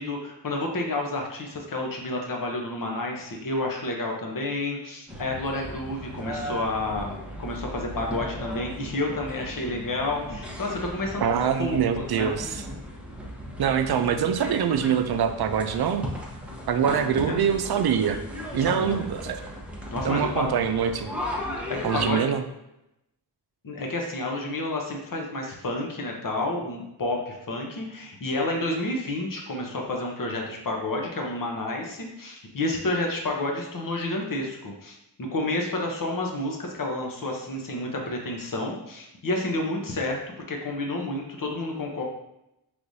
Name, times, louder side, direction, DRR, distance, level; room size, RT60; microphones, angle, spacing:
voice 1, 0.0-12.3 16.9-17.4 18.5-19.0 19.9-20.5 21.7-22.2 23.6-40.2 40.5-42.0, left 2 dB, 50° left, 1 dB, 1.0 m, -30 dB
sound 1, 5.1-22.1, equal, 5° right, 0.9 m, -37 dB
voice 2, 11.2-12.6 13.6-16.1 16.7-18.2 18.5-19.4 20.0-21.1 21.8-22.4, right 8 dB, 65° right, 8 dB, 0.5 m, -24 dB
4.7 x 3.4 x 2.7 m, 0.86 s
wide cardioid pair, 80°, 42 cm